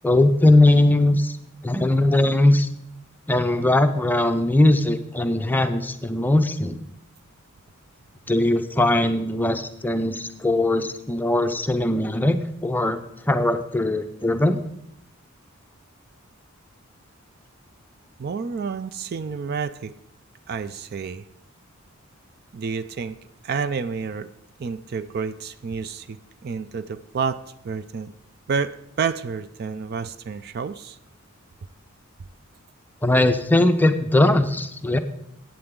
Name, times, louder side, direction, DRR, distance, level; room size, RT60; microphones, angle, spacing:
voice 1, 0.0-1.4 1.6-2.7 3.3-6.8 8.3-13.0 13.3-14.6 33.0-35.0, left 1 dB, 10° left, 8 dB, 0.6 m, -20 dB
voice 2, 18.2-19.9 20.5-21.2 22.5-23.2 23.4-24.3 24.6-28.1 28.5-31.0, right 5 dB, 50° right, 13 dB, 0.4 m, -29 dB
14.5 x 8.8 x 3.7 m, 0.77 s
head